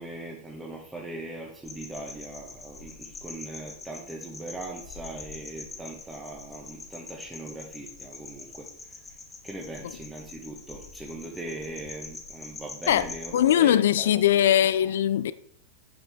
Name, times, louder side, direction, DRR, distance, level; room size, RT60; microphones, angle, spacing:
voice 1, 0.0-9.0 9.4-14.2 14.6-14.9, right 2 dB, 10° right, 1.2 m, -40 dB
sound 1, 1.6-13.6, left 4 dB, 15° left, 1.7 m, -44 dB
voice 2, 13.3-15.3, left 11 dB, 70° left, 0.4 m, -21 dB
8.6 x 5.8 x 3.5 m
hypercardioid pair, 105°, 0 cm